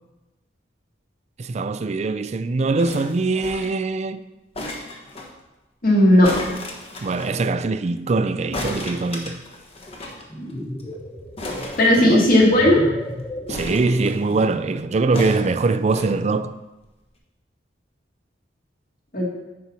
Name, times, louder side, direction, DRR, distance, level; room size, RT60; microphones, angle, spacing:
voice 1, 1.4-4.2 7.0-9.4 12.0-12.3 13.5-16.6, right 3 dB, 35° right, 0.4 m, -22 dB
sound 1, 2.8-3.8 4.5-5.3 6.2-7.3 8.5-10.2 10.5-10.6 10.8-10.9 11.4-12.5 13.5-14.4 15.1-16.1 16.8-16.9, left 1 dB, 35° left, 1.1 m, -34 dB
voice 2, 5.8-6.3 11.8-12.8 19.1-19.3, left 1 dB, 50° left, 2.3 m, -15 dB
sound 2, 10.1-14.9, equal, 15° left, 0.8 m, -35 dB
9.5 x 4.5 x 5.7 m
head